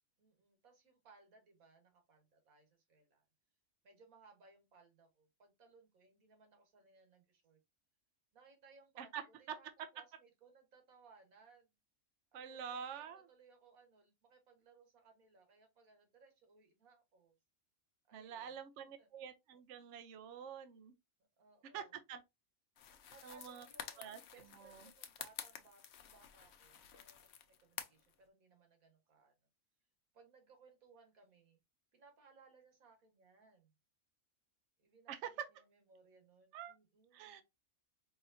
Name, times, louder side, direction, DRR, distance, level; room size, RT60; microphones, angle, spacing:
voice 1, 0.2-3.2 3.8-7.6 8.3-9.1 9.4-11.7 12.3-17.4 18.1-18.6 19.0-19.1 21.4-21.9 23.1-29.3 30.1-31.6 31.9-33.7 34.8-37.4, right 4 dB, 90° right, 1.8 m, -65 dB
voice 2, 9.0-9.6 12.3-13.2 18.1-21.0 21.7-22.2 23.2-23.7 24.0-24.2 24.5-24.9 35.1-35.5 36.5-36.7 37.1-37.4, right 8 dB, 65° right, 0.9 m, -47 dB
sound 1, 22.8-28.1, left 8 dB, 60° left, 0.8 m, -51 dB
4.8 x 2.9 x 2.6 m
omnidirectional pair, 1.4 m